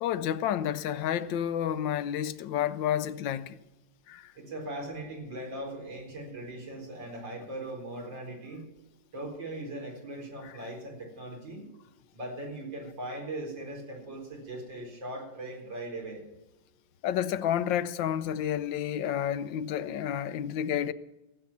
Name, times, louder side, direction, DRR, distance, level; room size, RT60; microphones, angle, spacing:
voice 1, 0.0-3.6 4.1-4.2 17.0-20.9, left 10 dB, 85° left, 1.4 m, -30 dB
voice 2, 4.3-8.6 9.1-11.7 12.1-16.2, right 1 dB, 80° right, 5.0 m, -39 dB
17.5 x 8.0 x 7.2 m
omnidirectional pair, 2.0 m